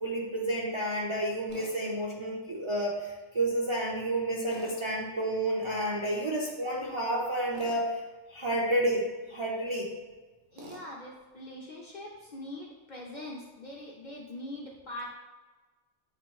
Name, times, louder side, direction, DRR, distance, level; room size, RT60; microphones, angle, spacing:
voice 1, 0.0-8.0 8.3-9.9, right 1 dB, 50° right, -4 dB, 0.3 m, -30 dB
Tools, 1.5-1.7 4.5-4.8 7.5-7.8 10.6-10.9, right 2 dB, 75° right, 1.2 m, -47 dB
voice 2, 10.5-15.1, left 1 dB, 50° left, -2 dB, 0.6 m, -42 dB
7.5 x 2.9 x 2.3 m, 1.3 s
omnidirectional pair, 1.3 m